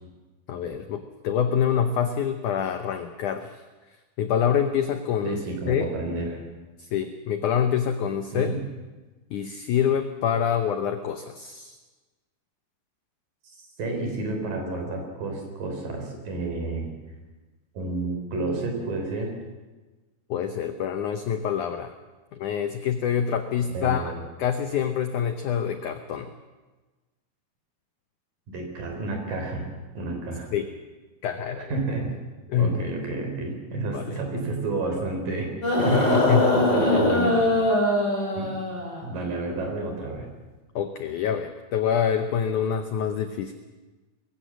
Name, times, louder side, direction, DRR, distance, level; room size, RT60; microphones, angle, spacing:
voice 1, 0.5-3.5 4.2-5.4 5.7-5.9 6.8-8.5 9.3-11.8 20.3-21.9 22.3-24.1 24.4-26.3 30.5-30.7 31.2-31.7 32.5-32.8 33.9-34.1 35.9-36.5 40.8-43.5, left 8 dB, 80° left, 8 dB, 1.8 m, -26 dB
voice 2, 5.2-6.4 8.3-8.6 13.6-17.0 17.8-19.3 23.7-24.2 28.5-29.7 30.0-30.5 31.6-32.1 32.6-35.5 35.8-37.3 38.4-38.5 39.0-40.3, right 3 dB, 55° right, 3 dB, 5.3 m, -30 dB
sound 1, 35.6-39.0 40.1-40.2, left 1 dB, 25° left, 5.3 m, -22 dB
21.5 x 16.5 x 7.5 m, 1.2 s
omnidirectional pair, 4.7 m